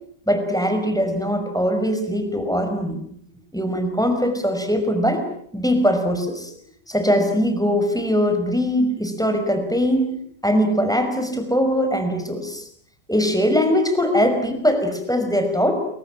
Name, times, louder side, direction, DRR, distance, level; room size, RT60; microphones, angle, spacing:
voice 1, 0.3-3.0 3.5-5.2 5.5-6.5 6.9-10.1 10.4-12.7 13.1-15.7, equal, ahead, 6 dB, 5.5 m, -21 dB
29.0 x 24.5 x 7.5 m, 0.65 s
omnidirectional pair, 1.8 m